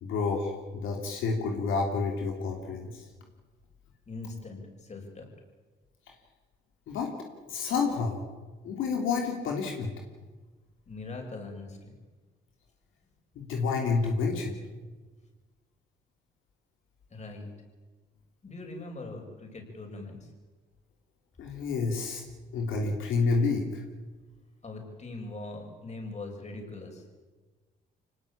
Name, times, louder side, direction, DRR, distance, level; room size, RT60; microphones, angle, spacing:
voice 1, 0.0-3.0 6.9-7.1 7.5-8.2 8.6-9.9 13.3-14.6 21.4-22.2 22.5-23.8, left 4 dB, 85° left, 2 dB, 3.4 m, -29 dB
voice 2, 4.1-5.3 10.9-12.0 17.1-17.5 18.4-20.3 24.6-27.0, left 2 dB, 35° left, 2 dB, 6.9 m, -41 dB
25.0 x 19.0 x 8.8 m, 1.3 s
cardioid pair, 90°, 20 cm